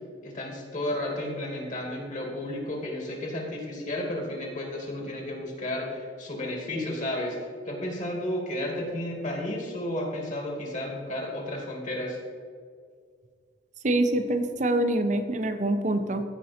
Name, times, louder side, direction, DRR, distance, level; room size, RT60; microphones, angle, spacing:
voice 1, 0.2-7.4 7.7-12.2, left 1 dB, 40° left, 0 dB, 2.2 m, -32 dB
voice 2, 13.8-16.2, right 1 dB, 40° right, 8 dB, 0.8 m, -25 dB
15.0 x 5.5 x 4.3 m, 2.1 s
head